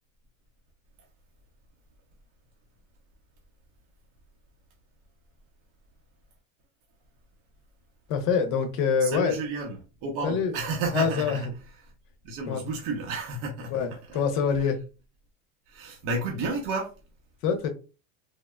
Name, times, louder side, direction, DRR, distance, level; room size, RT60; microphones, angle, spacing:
voice 1, 8.1-9.4 10.2-10.5 10.9-11.5 12.5-12.6 13.7-14.8 17.4-17.7, left 6 dB, 50° left, 0.8 m, -25 dB
voice 2, 9.0-11.5 11.8-11.9 12.2-14.2 14.6-14.7 15.7-16.9, right 3 dB, 50° right, 0.9 m, -32 dB
3.4 x 2.1 x 2.3 m
supercardioid pair, 130°, 41 cm